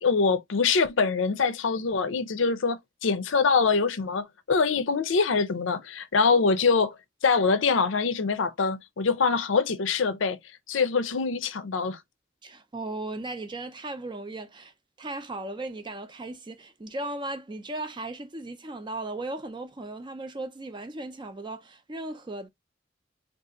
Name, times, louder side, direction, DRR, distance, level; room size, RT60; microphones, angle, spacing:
voice 1, 0.0-7.0 7.2-10.4 10.7-12.0, left 5 dB, 80° left, 0.6 m, -24 dB
voice 2, 12.4-22.5, right 2 dB, 25° right, 0.5 m, -37 dB
2.7 x 2.5 x 3.6 m
head